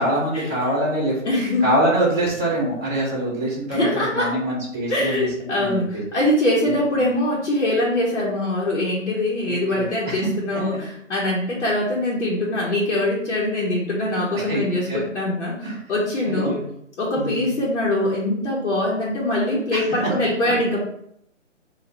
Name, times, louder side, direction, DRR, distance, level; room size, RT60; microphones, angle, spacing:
voice 1, 0.0-1.2 1.6-5.3 5.6-6.0 6.6-7.0 9.4-10.3 14.3-15.0 15.6-15.8 16.2-16.6 17.1-17.5 20.0-20.1, right 1 dB, 10° right, -10 dB, 0.7 m, -24 dB
voice 2, 1.2-1.7 3.7-4.3 4.9-16.6 17.0-20.8, left 1 dB, 60° left, -6 dB, 1.0 m, -23 dB
2.6 x 2.5 x 4.2 m, 0.71 s
hypercardioid pair, 160°, 39 cm